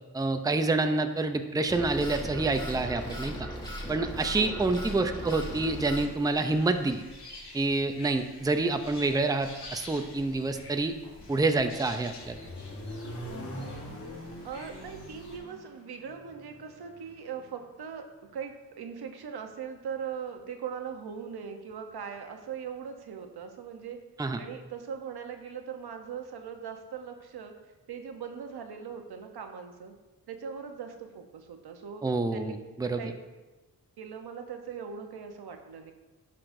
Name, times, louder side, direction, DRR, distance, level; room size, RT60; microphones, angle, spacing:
voice 1, 0.1-3.5 3.9-7.0 7.5-10.9 11.3-12.3 24.2-24.4 32.0-33.1, right 3 dB, 10° right, 7 dB, 0.5 m, -27 dB
sound 1, 1.7-6.1, equal, 10° left, 1.8 m, -37 dB
voice 2, 4.3-4.7 14.4-18.0 18.3-24.0 24.4-27.6 27.9-29.9 30.3-32.1 32.3-32.6 32.8-33.1 34.0-35.9, right 7 dB, 80° right, 5 dB, 0.9 m, -40 dB
sound 2, 5.4-15.4, left 2 dB, 85° left, 2.2 m, -48 dB
Accelerating revving vroom, 11.8-17.6, equal, 35° left, 1.4 m, -43 dB
11.0 x 5.8 x 2.6 m, 1.2 s
cardioid pair, 75°, 38 cm